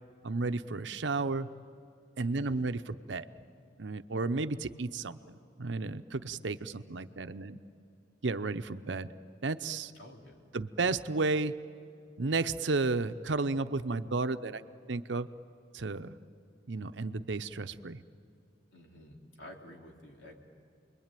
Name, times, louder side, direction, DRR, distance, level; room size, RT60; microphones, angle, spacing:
voice 1, 0.2-1.5 2.2-3.3 3.8-7.6 8.2-9.1 9.4-9.9 10.5-11.6 12.2-14.6 14.9-15.3 15.7-16.1 16.7-18.0, right 3 dB, 70° right, 10 dB, 0.8 m, -33 dB
voice 2, 2.2-2.7 9.9-10.5 18.7-20.4, left 1 dB, 80° left, 0 dB, 3.6 m, -51 dB
29.0 x 22.0 x 9.1 m, 2.4 s
head